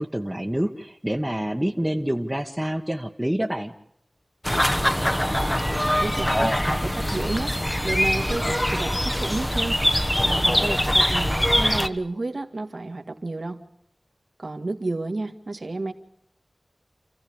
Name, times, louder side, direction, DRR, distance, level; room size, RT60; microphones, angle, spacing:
voice 1, 0.0-3.7, right 1 dB, 15° right, 0 dB, 1.4 m, -27 dB
sound 1, 4.4-11.9, equal, 15° left, 1.2 m, -23 dB
voice 2, 6.0-7.5 7.8-9.8 10.2-13.6 14.4-15.9, right 2 dB, 70° right, 5 dB, 2.1 m, -31 dB
28.5 x 15.0 x 8.7 m, 0.76 s
wide cardioid pair, 45°, 0 cm